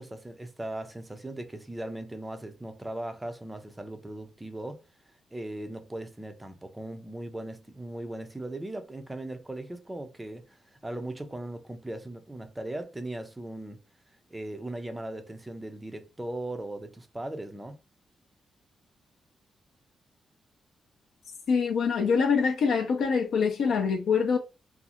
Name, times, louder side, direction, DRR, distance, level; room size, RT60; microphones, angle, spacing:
voice 1, 0.0-4.8 5.3-13.8 14.3-17.8, right 1 dB, 10° right, 0.4 m, -38 dB
voice 2, 21.5-24.4, left 5 dB, 70° left, 0.5 m, -24 dB
2.5 x 2.4 x 2.8 m
wide cardioid pair, 170°, 0 cm